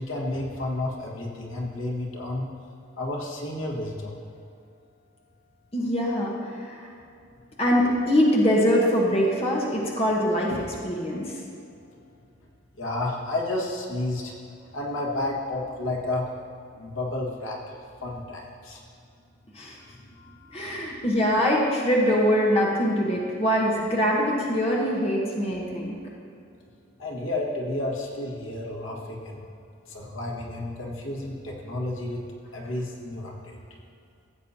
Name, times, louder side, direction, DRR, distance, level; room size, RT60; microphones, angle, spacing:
voice 1, 0.0-2.5 3.0-4.2 10.5-10.6 12.8-14.3 14.7-16.2 16.7-18.8 20.1-20.5 27.0-29.5 29.9-32.2 32.5-33.6, left 2 dB, 80° left, -2 dB, 1.5 m, -31 dB
voice 2, 5.7-6.9 7.6-10.5 10.8-11.4 19.5-19.8 20.5-26.0, equal, 30° left, -3 dB, 1.1 m, -23 dB
15.0 x 8.2 x 2.8 m, 2.5 s
head